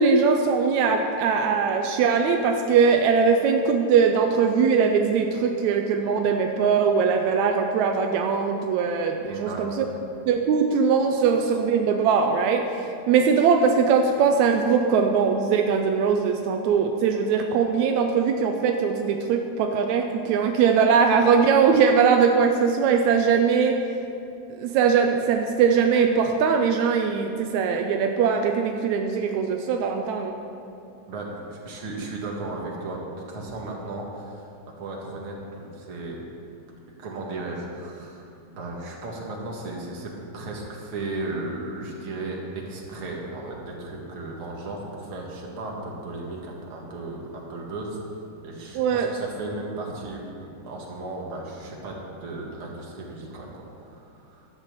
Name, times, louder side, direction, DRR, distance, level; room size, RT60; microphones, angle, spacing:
voice 1, 0.0-9.9 10.3-23.8 24.6-30.4 48.8-49.1, right 6 dB, 85° right, 4 dB, 2.0 m, -21 dB
voice 2, 9.3-9.9 31.1-33.0 33.3-34.5 34.8-36.2 37.0-48.2 48.4-54.5, right 2 dB, 50° right, -2 dB, 2.6 m, -35 dB
12.0 x 8.4 x 6.9 m, 2.5 s
omnidirectional pair, 3.3 m